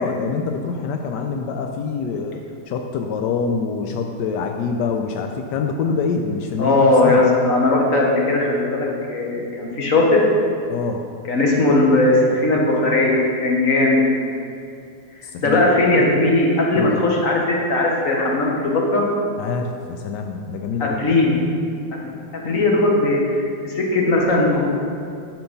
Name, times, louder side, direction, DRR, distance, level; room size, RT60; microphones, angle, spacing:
voice 1, 0.0-7.2 10.7-11.1 15.2-16.1 16.7-17.1 19.4-21.1, left 5 dB, 85° left, 4 dB, 1.3 m, -25 dB
voice 2, 6.6-10.2 11.3-14.0 15.4-19.0 20.8-21.4 21.9-24.7, left 2 dB, 50° left, -2 dB, 1.9 m, -18 dB
10.5 x 7.0 x 5.5 m, 2.5 s
omnidirectional pair, 1.8 m